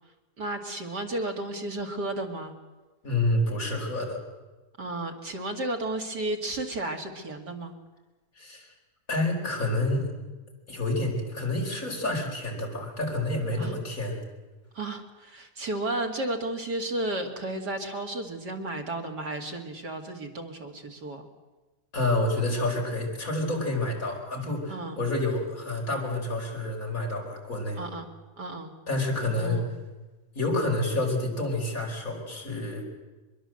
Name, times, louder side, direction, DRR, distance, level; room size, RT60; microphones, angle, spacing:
voice 1, 0.4-2.5 4.8-7.8 13.6-13.7 14.7-21.2 24.7-25.0 27.8-28.1 28.4-28.7 29.4-29.8, right 2 dB, 85° right, 3 dB, 3.1 m, -33 dB
voice 2, 3.0-4.2 8.4-8.7 9.1-10.1 10.7-14.2 21.9-27.8 28.9-29.6 30.3-32.8, left 2 dB, 55° left, 0 dB, 5.1 m, -28 dB
24.0 x 22.0 x 7.8 m, 1.2 s
omnidirectional pair, 1.7 m